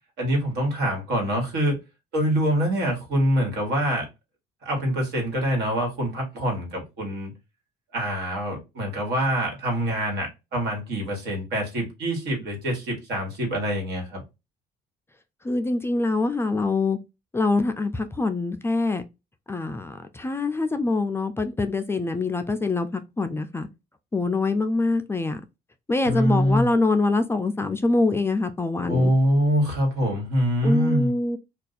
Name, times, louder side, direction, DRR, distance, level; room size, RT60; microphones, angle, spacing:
voice 1, 0.2-1.8 2.1-4.1 4.6-7.3 7.9-14.2 26.0-26.7 28.8-31.1, equal, 80° right, 1.5 m, -25 dB
voice 2, 15.4-17.0 17.3-19.0 19.5-23.7 24.1-25.4 25.9-29.1 30.6-31.4, left 3 dB, 15° left, 0.3 m, -24 dB
2.6 x 2.3 x 4.0 m
cardioid pair, 110°, 17 cm